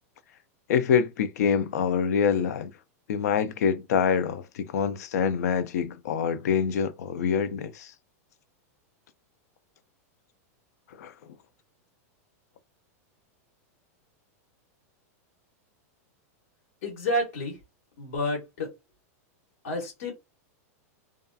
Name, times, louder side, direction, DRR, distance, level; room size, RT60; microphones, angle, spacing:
voice 1, 0.7-2.7 3.1-7.9 11.0-11.1, left 7 dB, 85° left, 0.4 m, -25 dB
voice 2, 16.8-17.6 18.0-18.7 19.6-20.1, left 1 dB, 65° left, 1.2 m, -29 dB
2.7 x 2.4 x 2.2 m
supercardioid pair, 150°, 9 cm